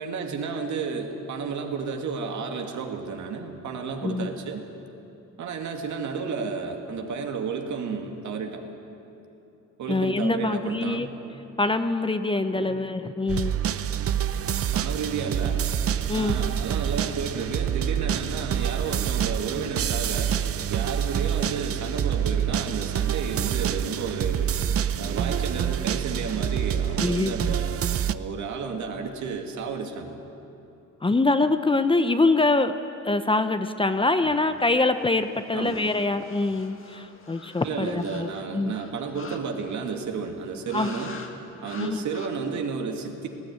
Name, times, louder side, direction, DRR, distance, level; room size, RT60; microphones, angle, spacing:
voice 1, 0.0-4.6 5.4-8.6 9.8-11.1 12.6-12.8 14.7-15.6 16.1-20.4 20.7-24.5 25.0-27.8 28.1-30.2 34.2-34.3 35.5-35.8 37.6-41.2 41.6-43.3, right 5 dB, 70° right, 3 dB, 2.5 m, -32 dB
voice 2, 4.0-4.3 9.9-11.1 11.6-13.5 16.1-16.4 27.0-27.5 31.0-32.7 33.0-38.7 40.7-40.9 41.8-42.0, left 3 dB, 15° left, 9 dB, 0.8 m, -24 dB
sound 1, 13.3-28.1, right 9 dB, 50° right, 0.7 m, -27 dB
sound 2, 34.4-40.0 40.7-41.3 41.6-42.3, left 4 dB, 45° left, 2.2 m, -46 dB
19.0 x 15.0 x 9.7 m, 2.8 s
cardioid pair, 90°, 30 cm